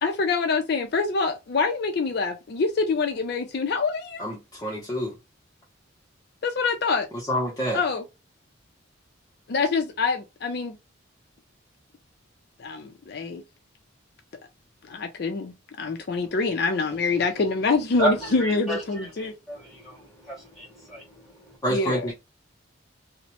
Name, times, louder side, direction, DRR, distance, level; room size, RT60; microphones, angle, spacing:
voice 1, 0.0-4.2 6.4-7.1 7.7-8.0 9.5-10.8 12.6-13.4 14.8-19.3 21.7-22.1, left 4 dB, 50° left, 0.4 m, -25 dB
voice 2, 4.2-5.2 7.3-7.8 21.6-22.1, equal, 15° left, 0.7 m, -27 dB
voice 3, 18.0-21.6, right 1 dB, ahead, 1.6 m, -32 dB
2.9 x 2.0 x 2.8 m
head